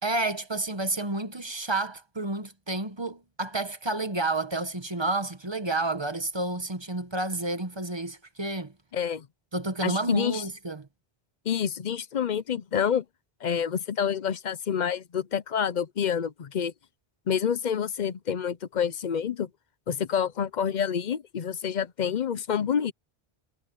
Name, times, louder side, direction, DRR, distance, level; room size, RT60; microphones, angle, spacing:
voice 1, 0.0-8.7 9.5-10.9, right 2 dB, 25° right, 1.1 m, -30 dB
voice 2, 8.9-9.3 9.8-10.4 11.5-13.0 13.4-16.7 17.3-19.5 19.9-22.9, left 8 dB, 50° left, 0.7 m, -28 dB
omnidirectional pair, 1.1 m